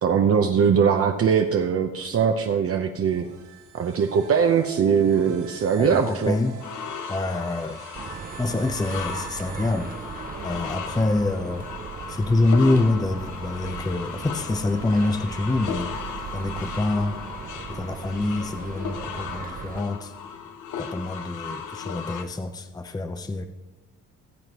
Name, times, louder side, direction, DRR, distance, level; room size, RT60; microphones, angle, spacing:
voice 1, 0.0-3.3 3.7-6.4, right 7 dB, 50° right, 4 dB, 0.8 m, -21 dB
sound 1, 2.9-10.5, right 9 dB, 80° right, 2.7 m, -45 dB
voice 2, 5.8-6.6 7.1-7.8 8.1-9.9 10.4-11.7 12.1-15.9 16.3-17.2 17.7-20.1 20.8-23.4, left 2 dB, 15° left, 7 dB, 0.6 m, -26 dB
sound 2, 6.6-22.2, left 7 dB, 80° left, 0.9 m, -36 dB
sound 3, 7.9-19.8, right 8 dB, 30° right, 0.4 m, -38 dB
19.0 x 7.8 x 3.0 m, 1.1 s
cardioid pair, 90°, 30 cm